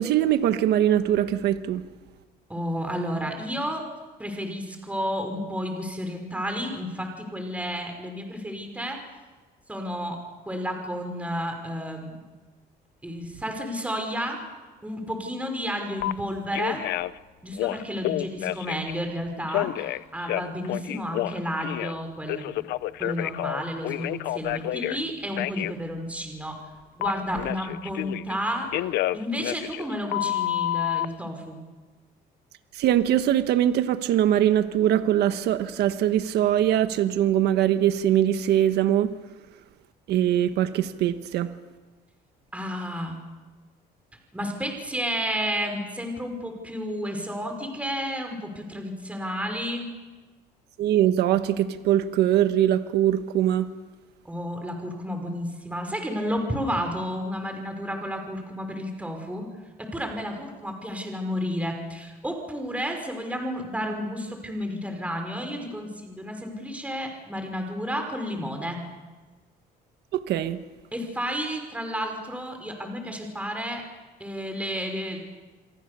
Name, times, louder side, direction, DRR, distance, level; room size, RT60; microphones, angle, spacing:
voice 1, 0.0-1.8 32.7-39.1 40.1-41.5 50.8-53.7 70.3-70.6, right 11 dB, 75° right, 1.4 m, -22 dB
voice 2, 2.5-3.8 4.2-9.0 9.7-10.2 10.5-12.2 13.0-14.4 14.8-16.8 17.4-22.7 23.0-26.6 27.0-28.7 29.1-31.6 42.5-43.2 44.3-49.9 54.2-59.5 59.8-68.8 70.9-73.8 74.2-75.2, equal, 10° right, 5.5 m, -31 dB
Telephone, 16.0-16.1 16.5-17.2 17.5-18.9 19.5-22.0 22.3-25.0 25.4-25.7 27.0-28.4 28.7-31.1, left 15 dB, 80° left, 0.7 m, -29 dB
28.0 x 23.0 x 6.9 m
cardioid pair, 110°, 17 cm